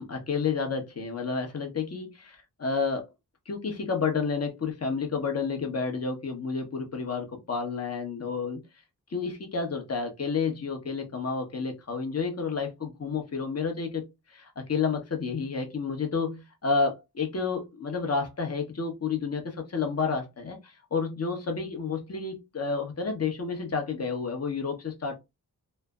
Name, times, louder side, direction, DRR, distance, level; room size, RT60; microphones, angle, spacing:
voice 1, 0.0-3.1 3.5-8.6 9.1-25.2, left 5 dB, 40° left, 1.0 m, -30 dB
3.2 x 2.1 x 2.3 m
cardioid pair, 55°, 39 cm